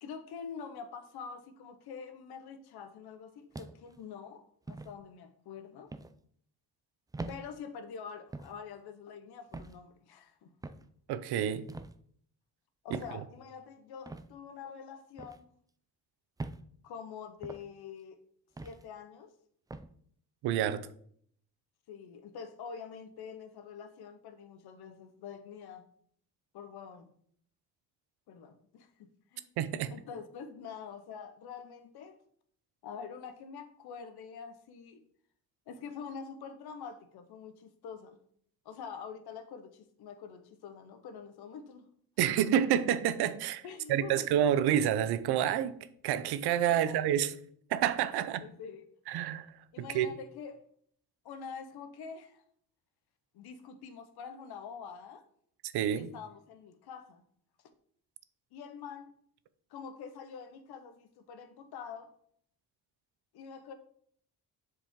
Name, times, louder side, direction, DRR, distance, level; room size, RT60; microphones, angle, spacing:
voice 1, 0.0-5.9 7.3-10.8 12.8-15.5 16.8-18.2 18.6-19.3 21.9-25.9 26.5-27.1 28.3-29.5 29.9-32.2 32.8-35.0 35.7-38.2 38.6-41.9 43.6-44.3 46.6-47.1 48.2-48.8 49.7-50.6 51.2-52.4 53.3-55.2 55.9-57.2 58.5-59.1 59.7-62.1 63.3-63.7, left 6 dB, 80° left, 1.0 m, -46 dB
sound 1, 3.5-4.0 4.7-4.9 5.9-6.1 7.1-7.4 8.3-8.6 9.5-9.8 10.6-10.9 11.7-12.0 12.9-13.2 14.1-14.3 15.2-15.4 16.4-16.6 17.4-17.7 18.6-18.8 19.7-19.9, right 3 dB, 10° right, 0.3 m, -42 dB
voice 2, 11.1-11.6 12.9-13.0 20.4-20.9 29.6-29.9 42.2-45.8 46.0-47.3 47.7-48.4 49.1-50.1 55.6-56.1, right 10 dB, 90° right, 0.7 m, -29 dB
7.1 x 5.0 x 3.7 m
cardioid pair, 100°, 38 cm